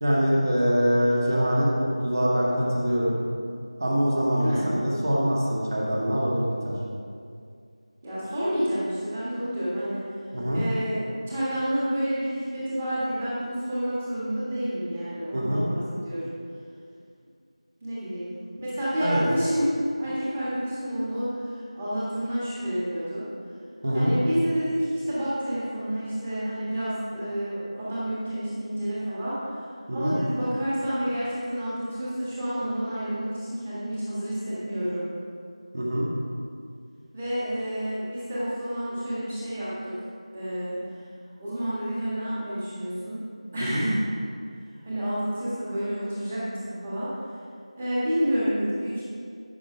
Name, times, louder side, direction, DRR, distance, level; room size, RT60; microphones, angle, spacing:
voice 1, 0.0-3.2 3.8-4.6 4.8-6.7 10.3-10.6 15.3-15.6 19.0-19.2 23.8-24.1 29.9-30.2 35.7-36.1 43.6-43.8, equal, 30° right, -4 dB, 1.7 m, -24 dB
voice 2, 4.3-4.7 8.0-10.0 10.5-16.3 17.8-23.3 23.9-29.4 29.9-35.1 37.1-39.9 40.3-40.8 41.4-43.2 43.5-44.0 44.8-47.1 47.8-49.0, equal, 10° right, -10 dB, 1.6 m, -29 dB
13.5 x 6.1 x 5.0 m, 2.3 s
figure-of-eight pair, 170°, 3 cm